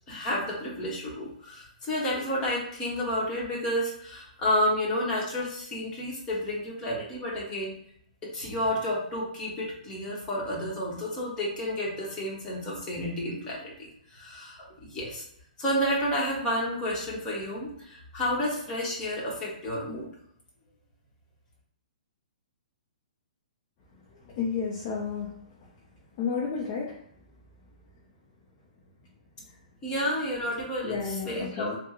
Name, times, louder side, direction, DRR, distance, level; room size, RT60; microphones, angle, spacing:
voice 1, 0.1-7.8 8.2-15.2 15.6-20.1 29.8-31.7, equal, 20° left, -4 dB, 1.1 m, -31 dB
voice 2, 24.2-25.3 25.6-25.7 26.2-27.0 30.8-31.8, left 5 dB, 35° left, -4 dB, 0.7 m, -31 dB
3.5 x 2.2 x 3.0 m, 0.70 s
hypercardioid pair, 155°, 4 cm